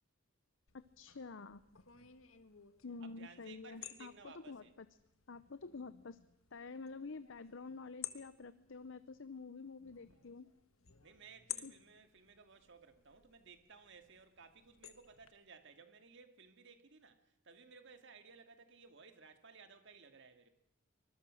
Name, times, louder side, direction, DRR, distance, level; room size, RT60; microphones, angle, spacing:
sound 1, 0.7-15.3, left 12 dB, 90° left, 1.5 m, -54 dB
voice 1, 1.0-1.6 2.8-4.9 5.3-6.2 6.5-10.5 11.6-11.7, left 4 dB, 65° left, 0.7 m, -48 dB
voice 2, 3.0-4.7 9.9-10.3 11.0-20.5, right 5 dB, 60° right, 2.1 m, -59 dB
24.0 x 21.5 x 6.4 m
head